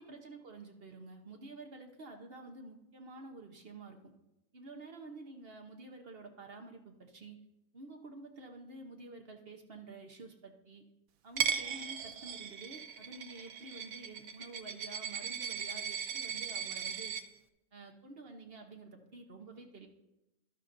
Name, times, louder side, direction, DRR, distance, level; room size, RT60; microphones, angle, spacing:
voice 1, 0.0-4.1 4.5-7.4 7.7-10.8 11.2-17.2 17.7-19.9, right 3 dB, 45° right, 3 dB, 1.0 m, -50 dB
Coin (dropping), 11.4-17.2, right 7 dB, 70° right, 1.1 m, -38 dB
12.5 x 11.5 x 2.6 m, 0.94 s
omnidirectional pair, 1.6 m